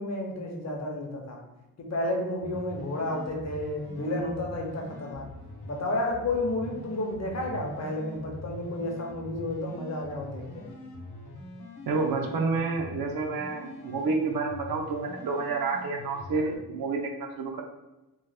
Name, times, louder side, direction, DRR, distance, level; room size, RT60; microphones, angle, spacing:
voice 1, 0.0-1.4 1.8-5.3 5.7-10.7, left 1 dB, 45° left, 1 dB, 0.5 m, -31 dB
sound 1, 2.4-16.6, left 1 dB, 85° left, 0.8 m, -44 dB
voice 2, 11.9-17.1 17.4-17.6, right 4 dB, 70° right, 2 dB, 0.5 m, -29 dB
2.9 x 2.0 x 3.3 m, 1.0 s
wide cardioid pair, 175°, 37 cm